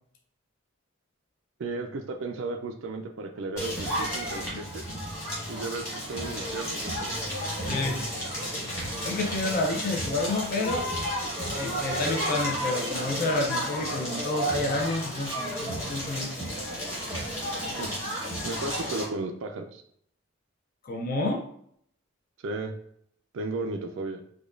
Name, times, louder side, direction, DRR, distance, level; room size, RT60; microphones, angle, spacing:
voice 1, 1.6-4.8 5.5-7.1 17.8-19.8 22.4-22.7 23.3-24.2, right 3 dB, 65° right, 4 dB, 0.4 m, -35 dB
Crackle, 3.6-19.0, equal, 15° left, 1.5 m, -32 dB
voice 2, 7.6-8.0 9.0-10.9 11.5-16.3 20.8-21.4, left 2 dB, 45° left, 1 dB, 0.5 m, -29 dB
4.9 x 2.3 x 2.4 m, 0.67 s
head